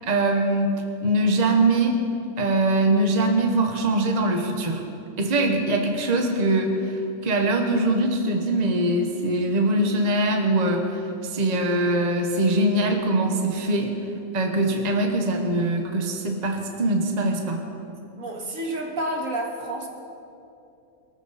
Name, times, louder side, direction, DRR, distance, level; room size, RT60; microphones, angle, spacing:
voice 1, 0.0-2.0 2.4-4.8 5.2-13.9 14.3-17.6, right 2 dB, 30° right, 3 dB, 1.2 m, -22 dB
voice 2, 18.2-19.9, right 1 dB, 65° right, 1 dB, 2.2 m, -29 dB
22.5 x 14.0 x 4.2 m, 2.7 s
omnidirectional pair, 1.5 m